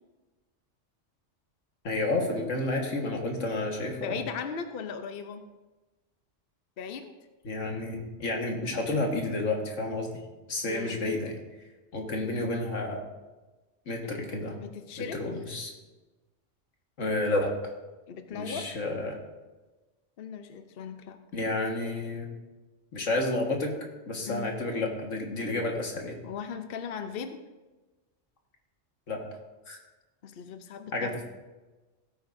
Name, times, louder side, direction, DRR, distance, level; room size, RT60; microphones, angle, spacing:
voice 1, 1.8-4.2 7.4-10.1 10.5-11.4 11.9-13.0 13.9-14.6 15.0-15.7 17.0-17.5 18.3-19.2 21.3-22.3 22.9-23.8 24.1-26.2 29.1-29.2 29.7-29.8 30.9-31.2, left 2 dB, 85° left, 1 dB, 2.0 m, -30 dB
voice 2, 3.9-5.4 6.8-7.1 10.6-11.1 14.0-14.1 14.6-15.2 18.1-18.8 20.2-21.2 24.2-24.5 26.2-27.4 30.2-31.2, left 6 dB, 55° left, 7 dB, 0.9 m, -38 dB
16.5 x 9.0 x 2.6 m, 1.2 s
omnidirectional pair, 1.2 m